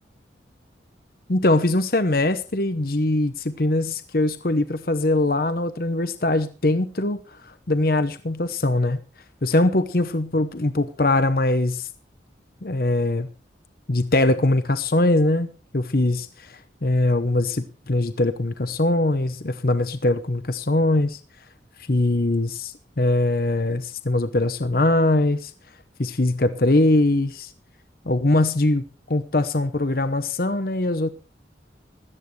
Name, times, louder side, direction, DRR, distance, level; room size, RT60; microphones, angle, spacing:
voice 1, 1.3-7.2 7.7-9.0 9.4-11.9 12.6-13.3 13.9-15.5 15.7-16.3 16.8-21.2 21.9-25.5 26.0-27.5 28.1-28.8 29.1-31.1, left 2 dB, 55° left, 0.9 m, -21 dB
16.5 x 13.0 x 3.3 m
head